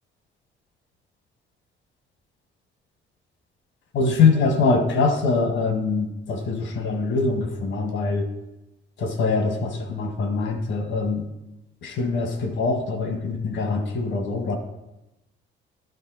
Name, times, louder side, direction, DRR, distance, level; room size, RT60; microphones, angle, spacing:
voice 1, 3.9-8.3 9.0-11.2 11.8-14.6, left 4 dB, 80° left, 5 dB, 1.4 m, -23 dB
12.0 x 5.4 x 3.9 m, 0.96 s
cardioid pair, 90°, 20 cm